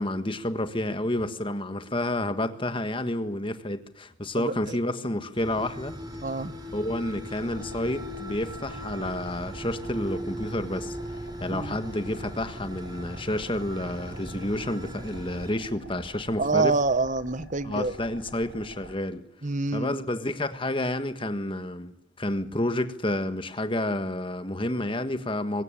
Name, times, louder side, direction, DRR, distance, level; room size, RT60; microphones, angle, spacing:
voice 1, 0.0-6.0 6.7-11.0 11.4-16.7 17.6-19.2 19.7-25.6, left 1 dB, 25° left, 1.5 m, -30 dB
voice 2, 4.4-4.8 6.2-6.5 11.5-11.8 16.4-17.9 19.4-20.0, right 3 dB, 35° right, 1.0 m, -27 dB
sound 1, 5.3-15.5, equal, 20° right, 3.1 m, -39 dB
sound 2, 7.3-18.9, right 1 dB, 75° right, 6.5 m, -47 dB
23.5 x 18.5 x 9.0 m
head